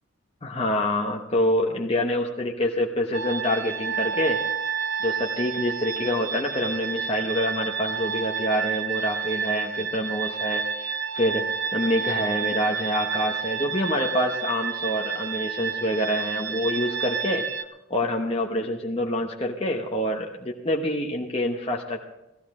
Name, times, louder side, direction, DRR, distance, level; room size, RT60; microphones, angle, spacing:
voice 1, 0.4-4.4 5.0-11.4 11.7-17.5 17.9-22.0, left 1 dB, 25° left, 0 dB, 0.9 m, -26 dB
sound 1, 3.1-17.6, right 6 dB, 60° right, 0.7 m, -30 dB
17.0 x 14.0 x 3.7 m, 0.95 s
head